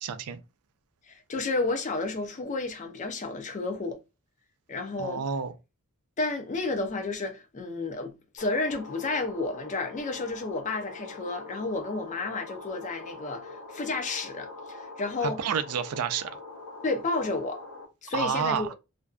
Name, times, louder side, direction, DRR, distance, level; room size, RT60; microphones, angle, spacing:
voice 1, 0.0-0.4 5.0-5.5 15.2-16.3 18.1-18.7, right 7 dB, 85° right, 0.4 m, -29 dB
voice 2, 1.1-4.0 4.7-5.2 6.2-15.4 16.8-17.6 18.0-18.7, left 3 dB, 35° left, 0.4 m, -31 dB
sound 1, 8.4-17.8, left 3 dB, 70° left, 0.7 m, -43 dB
2.5 x 2.2 x 2.3 m
head